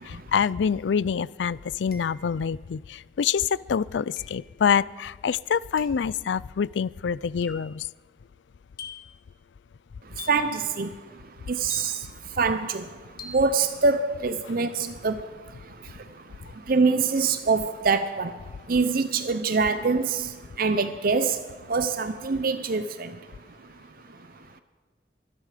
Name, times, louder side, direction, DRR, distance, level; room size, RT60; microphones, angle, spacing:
voice 1, 0.0-7.9, left 7 dB, 85° left, 21 dB, 0.4 m, -26 dB
sound 1, 0.7-0.8 1.9-2.4 4.2-4.5 5.8-6.1 7.4-7.7 8.8-9.2 10.2-10.6 11.7-12.2 13.2-13.5, left 6 dB, 55° left, 1.7 m, -44 dB
voice 2, 10.3-10.9 11.5-11.9 12.4-12.8 13.3-15.1 16.7-18.3 18.7-20.3 20.6-21.4 21.7-23.1, right 4 dB, 55° right, 10 dB, 0.7 m, -24 dB
24.5 x 11.0 x 5.0 m, 1.4 s
head